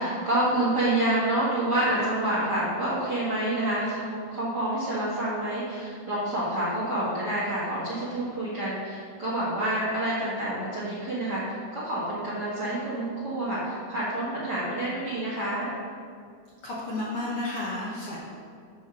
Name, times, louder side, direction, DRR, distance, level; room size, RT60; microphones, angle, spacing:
voice 1, 0.0-15.7, right 1 dB, 40° right, -8 dB, 1.8 m, -28 dB
voice 2, 16.6-18.2, left 2 dB, 55° left, -6 dB, 1.7 m, -32 dB
7.1 x 5.7 x 6.1 m, 2.2 s
omnidirectional pair, 3.7 m